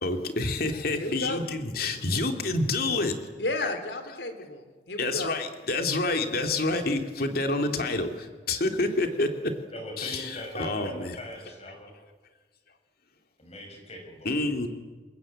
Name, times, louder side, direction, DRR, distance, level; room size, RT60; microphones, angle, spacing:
voice 1, 0.0-3.2 3.6-3.8 4.1-4.2 5.0-9.5 10.0-11.2 14.2-14.7, left 2 dB, 60° left, 5 dB, 2.7 m, -28 dB
voice 2, 1.0-1.4 3.4-5.3, left 2 dB, 90° left, 8 dB, 3.4 m, -33 dB
voice 3, 9.7-11.9 13.4-14.3, left 1 dB, 40° left, 2 dB, 6.8 m, -40 dB
28.0 x 21.5 x 8.7 m, 1.4 s
head